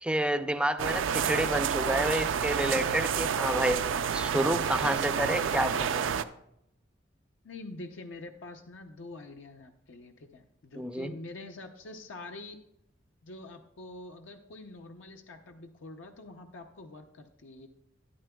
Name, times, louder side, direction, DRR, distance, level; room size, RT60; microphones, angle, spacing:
voice 1, 0.0-3.8 4.1-6.1 10.8-11.1, right 1 dB, 5° right, 10 dB, 0.4 m, -29 dB
sound 1, 0.8-6.2, right 7 dB, 75° right, 0.4 m, -29 dB
voice 2, 7.4-12.6 13.2-17.7, left 2 dB, 75° left, 4 dB, 0.6 m, -45 dB
12.5 x 10.5 x 2.3 m, 0.78 s
head